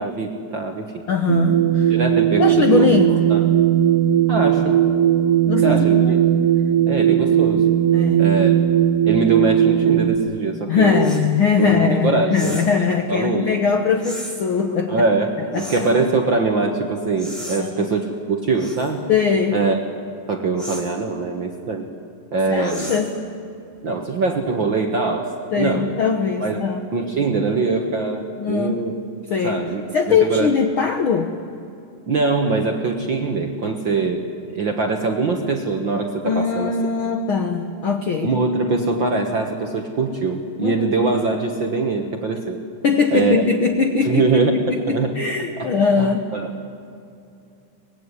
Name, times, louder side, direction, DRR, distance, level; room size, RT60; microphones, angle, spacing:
voice 1, 0.0-1.0 1.9-3.5 4.3-4.8 5.6-6.2 6.9-7.7 8.2-8.6 9.0-11.1 11.6-12.7 13.1-13.6 14.9-19.1 19.5-19.8 20.3-21.9 22.3-22.9 23.8-25.9 26.4-28.9 29.4-30.5 32.1-34.2 34.5-36.7 38.2-42.6 43.1-43.4 44.0-45.2 46.0-46.5, right 3 dB, 55° right, 3 dB, 1.4 m, -23 dB
voice 2, 1.1-1.9 2.4-3.2 5.5-6.1 7.9-8.3 10.7-15.0 15.5-15.9 17.6-17.9 19.1-19.6 22.5-23.2 25.5-26.8 28.4-28.9 29.3-29.6 29.9-31.3 36.2-38.3 40.6-40.9 42.8-46.3, left 5 dB, 65° left, 6 dB, 1.3 m, -21 dB
sound 1, 1.3-10.2, right 10 dB, 80° right, 2.7 m, -17 dB
sound 2, 11.0-11.3 12.3-12.8 14.0-14.4 15.5-16.0 17.2-17.6 18.6-18.9 20.6-20.9 22.6-23.2, equal, ahead, 4.6 m, -35 dB
24.0 x 20.5 x 9.7 m, 2.6 s
omnidirectional pair, 3.8 m